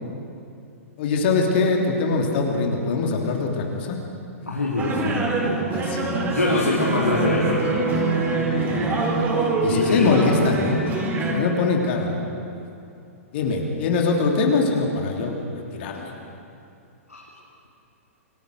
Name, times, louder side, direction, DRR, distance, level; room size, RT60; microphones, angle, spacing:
voice 1, 1.0-4.0 5.7-6.2 8.1-8.2 8.6-9.0 9.6-10.8 11.3-12.2 12.5-12.6 13.3-16.1, left 4 dB, 45° left, 1 dB, 3.2 m, -23 dB
voice 2, 4.5-5.3 6.2-7.6 9.7-10.2 17.1-17.2, left 2 dB, 85° left, -4 dB, 3.6 m, -24 dB
sound 1, 4.8-11.3, right 3 dB, 25° right, 4.8 m, -24 dB
28.5 x 19.0 x 6.5 m, 2.6 s
figure-of-eight pair, 110°, 8 cm